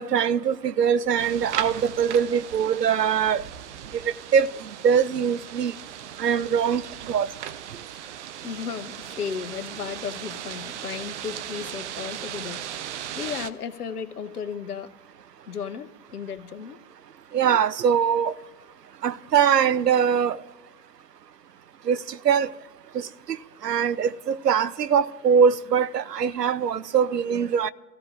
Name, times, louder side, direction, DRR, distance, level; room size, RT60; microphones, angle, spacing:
voice 1, 0.0-3.4 3.9-4.0 4.3-4.5 4.8-5.7 6.2-6.8 7.1-7.3 17.3-18.3 19.0-20.4 21.9-22.5 22.9-23.1 23.6-27.7, right 7 dB, 85° right, 0.6 m, -22 dB
sound 1, 1.2-13.5, right 10 dB, 50° right, 0.8 m, -37 dB
voice 2, 8.4-12.6 13.1-15.0 15.5-16.8, left 7 dB, 70° left, 0.9 m, -34 dB
27.0 x 15.5 x 2.5 m
figure-of-eight pair, 110°, 47 cm